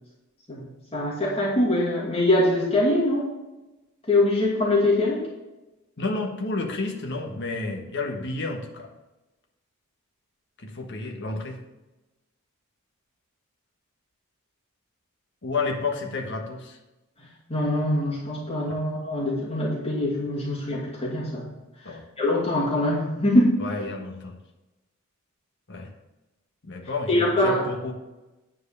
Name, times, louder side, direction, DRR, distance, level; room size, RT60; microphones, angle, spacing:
voice 1, 0.9-3.3 4.1-5.2 17.5-21.5 22.2-23.6 27.1-27.6, left 1 dB, 30° left, -5 dB, 2.4 m, -23 dB
voice 2, 6.0-8.9 10.6-11.6 15.4-16.8 21.8-22.0 23.6-24.4 25.7-25.9 26.6-27.9, left 3 dB, 55° left, 2 dB, 1.4 m, -31 dB
9.9 x 4.8 x 6.8 m, 1.0 s
head